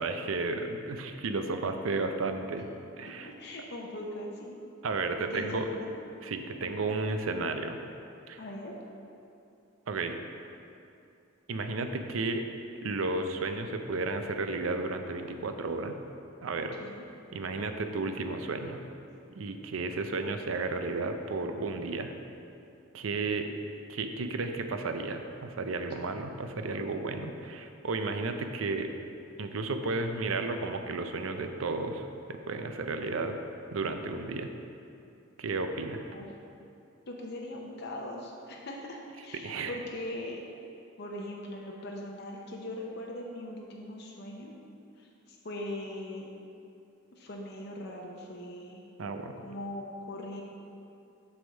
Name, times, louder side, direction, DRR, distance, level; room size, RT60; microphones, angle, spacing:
voice 1, 0.0-2.6 3.0-3.3 4.8-5.7 6.2-7.8 8.3-8.4 9.9-10.1 11.5-12.4 12.8-16.0 16.4-16.8 17.3-18.8 19.4-22.1 22.9-23.5 23.9-28.9 29.4-33.4 33.7-34.5 35.4-36.1 39.4-39.8 49.0-49.4, right 3 dB, 90° right, 7 dB, 0.5 m, -33 dB
voice 2, 3.0-4.6 5.2-5.9 8.4-8.7 16.8-17.0 36.1-36.3 37.1-40.4 41.0-44.5 45.0-46.3 47.1-48.8 49.4-50.4, left 1 dB, 55° left, -1 dB, 0.7 m, -40 dB
7.7 x 3.5 x 6.3 m, 2.6 s
head